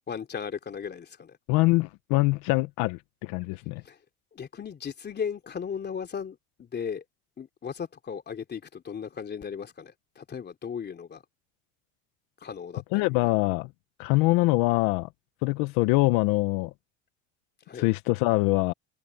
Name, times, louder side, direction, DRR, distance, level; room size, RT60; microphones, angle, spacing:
voice 1, 0.1-1.4 3.8-4.0 4.3-7.0 7.4-11.2 12.4-13.1 17.7-17.9, left 7 dB, 30° left, 3.2 m, -36 dB
voice 2, 1.5-3.8 12.9-13.7 14.0-15.1 15.4-16.7 17.7-18.7, left 22 dB, 80° left, 0.9 m, -24 dB
cardioid pair, 115°, 32 cm